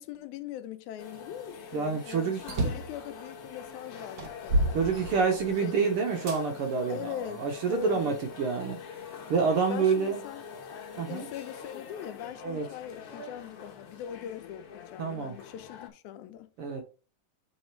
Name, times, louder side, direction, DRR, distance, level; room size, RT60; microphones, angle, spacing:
voice 1, 0.0-5.2 5.6-5.8 6.9-8.1 9.7-10.4 11.1-16.5, left 11 dB, 80° left, 2.0 m, -41 dB
sound 1, 1.0-15.9, left 6 dB, 60° left, 1.6 m, -45 dB
voice 2, 1.7-2.4 4.7-8.8 9.3-10.2 11.0-11.3 12.4-12.7 15.0-15.3 16.6-16.8, right 5 dB, 75° right, 1.3 m, -28 dB
sound 2, 2.4-3.0 3.6-3.7 4.2-5.6 6.3-6.4 7.1-8.2, right 1 dB, 60° right, 1.1 m, -30 dB
6.2 x 4.0 x 4.4 m
omnidirectional pair, 3.5 m